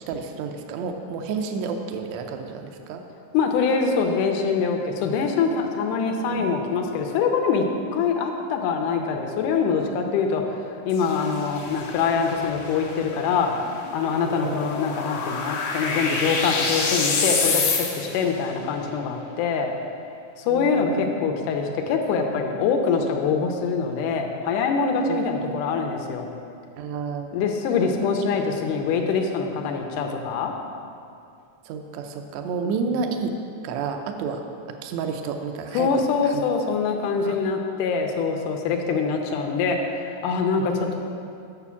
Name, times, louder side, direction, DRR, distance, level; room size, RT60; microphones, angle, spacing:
voice 1, 0.1-3.0 6.3-6.5 10.0-10.1 14.4-14.6 20.5-20.9 26.8-27.3 28.0-28.1 31.7-33.3 33.6-34.4 34.8-36.4 37.2-37.4 40.6-40.9, right 5 dB, 80° right, 4 dB, 1.6 m, -30 dB
voice 2, 3.3-7.6 7.9-19.7 20.4-26.3 27.3-30.5 32.6-32.7 35.7-41.0, left 5 dB, 85° left, 3 dB, 2.2 m, -24 dB
sound 1, 10.9-18.3, left 4 dB, 70° left, 2.3 m, -28 dB
6.9 x 6.1 x 7.1 m, 2.5 s
omnidirectional pair, 3.7 m